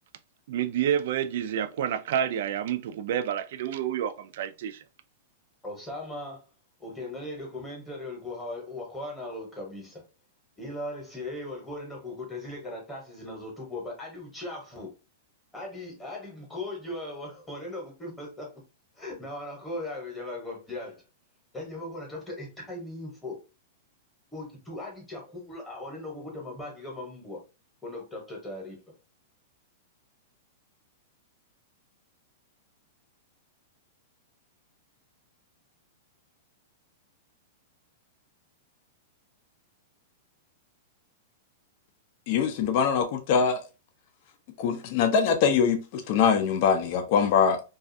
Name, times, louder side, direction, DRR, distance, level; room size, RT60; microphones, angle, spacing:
voice 1, 0.5-4.8, right 9 dB, 60° right, 0.3 m, -29 dB
voice 2, 5.6-6.4 6.8-10.0 10.6-14.9 15.5-18.6 19.0-21.0 21.5-23.4 24.3-27.4 27.8-28.8, left 1 dB, 10° left, 0.9 m, -38 dB
voice 3, 42.3-43.6 44.6-47.6, left 6 dB, 45° left, 0.4 m, -23 dB
2.4 x 2.3 x 2.5 m
hypercardioid pair, 150°, 0 cm